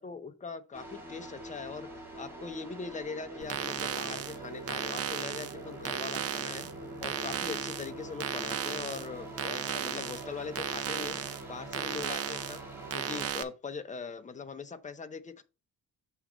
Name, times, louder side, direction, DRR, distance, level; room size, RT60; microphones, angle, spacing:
voice 1, 0.0-1.9 2.2-6.7 7.0-11.2 11.5-12.6 12.9-15.4, left 5 dB, 20° left, 0.7 m, -41 dB
sound 1, 0.7-13.3, right 1 dB, 5° right, 2.0 m, -45 dB
sound 2, 3.4-13.4, right 8 dB, 45° right, 0.7 m, -36 dB
7.5 x 3.1 x 5.0 m
cardioid pair, 120°, 33 cm